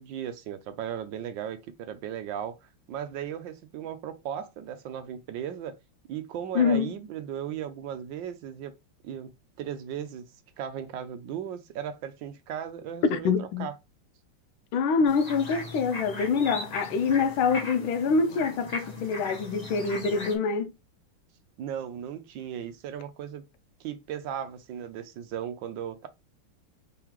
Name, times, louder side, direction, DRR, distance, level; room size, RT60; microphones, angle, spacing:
voice 1, 0.0-2.6 2.9-5.8 6.1-8.7 9.0-9.3 9.6-10.3 10.6-13.7 21.6-23.4 23.8-26.1, right 9 dB, 75° right, 1.3 m, -36 dB
voice 2, 6.5-6.9 13.1-13.7 14.7-20.7, left 5 dB, 85° left, 1.5 m, -25 dB
sound 1, 15.0-20.3, left 2 dB, 30° left, 0.8 m, -38 dB
3.8 x 3.8 x 3.0 m
omnidirectional pair, 2.2 m